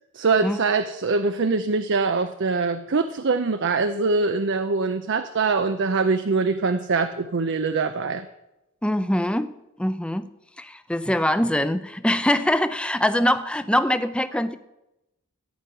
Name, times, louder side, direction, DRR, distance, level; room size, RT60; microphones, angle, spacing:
voice 1, 0.1-8.3, right 4 dB, 55° right, 9 dB, 0.6 m, -23 dB
voice 2, 8.8-9.5 9.8-10.3 10.6-14.6, left 1 dB, 5° left, 12 dB, 0.5 m, -23 dB
15.0 x 5.1 x 9.3 m, 0.92 s
head